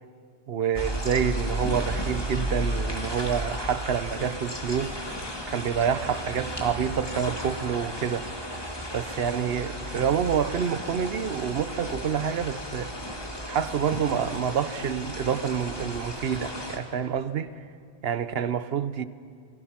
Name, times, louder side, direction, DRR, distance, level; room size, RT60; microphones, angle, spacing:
voice 1, 0.5-5.2 5.5-8.3 8.9-12.9 13.5-17.5 18.0-19.0, right 8 dB, 65° right, 0.9 m, -28 dB
sound 1, 0.7-16.8, equal, 20° left, 2.4 m, -34 dB
28.0 x 20.5 x 5.9 m
omnidirectional pair, 1.1 m